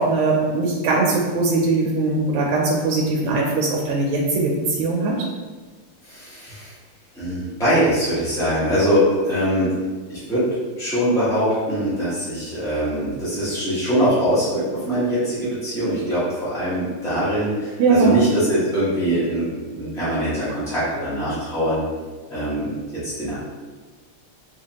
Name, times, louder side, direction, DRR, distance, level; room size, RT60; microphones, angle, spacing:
voice 1, 0.0-5.2 17.8-18.2, right 3 dB, 80° right, -2 dB, 1.4 m, -20 dB
voice 2, 6.0-6.7 7.1-10.5 10.8-21.8 22.3-22.8 23.0-23.3, equal, 5° left, -12 dB, 0.5 m, -22 dB
3.3 x 3.2 x 2.8 m, 1.4 s
omnidirectional pair, 2.4 m